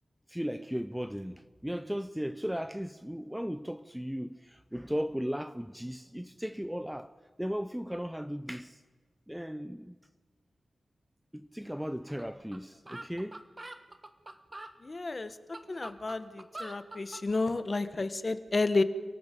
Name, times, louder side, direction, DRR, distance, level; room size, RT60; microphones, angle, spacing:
voice 1, 0.3-7.1 7.4-8.8 9.3-10.0 11.3-13.4, equal, 5° right, 0.6 m, -36 dB
sound 1, 12.2-12.3 12.5-12.6 12.9-14.7 15.3-17.2, right 2 dB, 25° right, 1.2 m, -44 dB
voice 2, 14.8-15.3 15.7-18.8, left 3 dB, 35° left, 1.1 m, -31 dB
30.0 x 18.5 x 5.2 m
wide cardioid pair, 125°, 0 cm